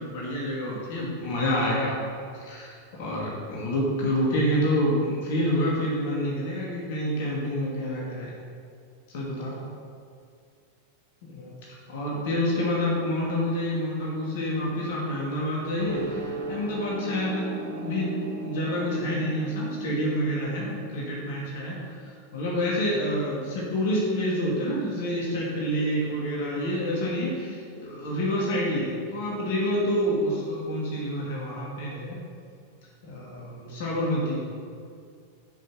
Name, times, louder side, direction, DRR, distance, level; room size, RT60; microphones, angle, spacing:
voice 1, 0.0-8.3 9.1-9.7 11.3-11.5 11.9-32.2 33.0-34.5, equal, 55° left, -4 dB, 2.4 m, -28 dB
sound 1, 15.8-22.1, right 2 dB, 70° right, 1.3 m, -37 dB
10.5 x 5.9 x 6.9 m, 2.2 s
figure-of-eight pair, 90°, 0 cm